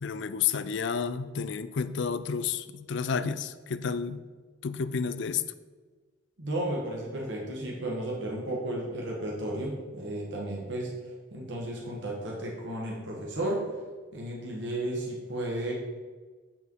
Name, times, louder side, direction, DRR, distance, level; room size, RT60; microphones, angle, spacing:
voice 1, 0.0-4.2 4.6-5.4, left 6 dB, 60° left, 13 dB, 0.4 m, -31 dB
voice 2, 6.4-13.6 14.1-15.7, right 1 dB, 60° right, -2 dB, 1.5 m, -33 dB
9.2 x 4.9 x 4.6 m, 1.4 s
head